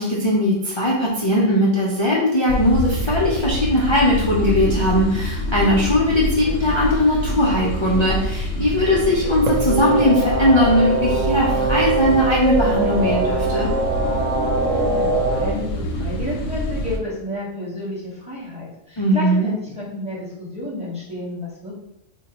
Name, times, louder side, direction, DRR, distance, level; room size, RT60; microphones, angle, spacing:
voice 1, 0.0-13.7 19.0-19.5, left 1 dB, 50° left, -5 dB, 0.3 m, -19 dB
sound 1, 2.5-17.0, left 1 dB, 70° left, 0.8 m, -26 dB
sound 2, 9.4-15.5, right 3 dB, 85° right, 1.1 m, -22 dB
voice 2, 14.5-21.8, left 1 dB, 5° right, -7 dB, 0.9 m, -31 dB
4.0 x 2.2 x 2.9 m, 0.84 s
omnidirectional pair, 1.3 m